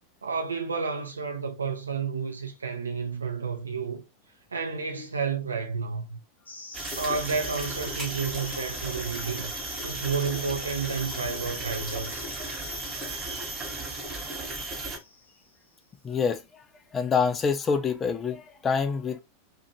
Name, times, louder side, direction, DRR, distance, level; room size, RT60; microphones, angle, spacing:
voice 1, 0.2-4.0 4.5-6.2 7.0-9.5 9.8-12.3, right 5 dB, 75° right, 0.5 m, -31 dB
sound 1, 6.5-15.6, left 2 dB, 75° left, 0.6 m, -44 dB
sound 2, 6.7-15.0, right 2 dB, 20° right, 1.2 m, -36 dB
sound 3, 6.9-7.2 7.6-8.2 8.6-8.7 9.8-9.9 14.8-14.9, equal, ahead, 1.1 m, -41 dB
voice 2, 16.0-16.4 16.9-19.2, left 5 dB, 20° left, 0.5 m, -26 dB
2.8 x 2.5 x 2.8 m
figure-of-eight pair, 90°, 0 cm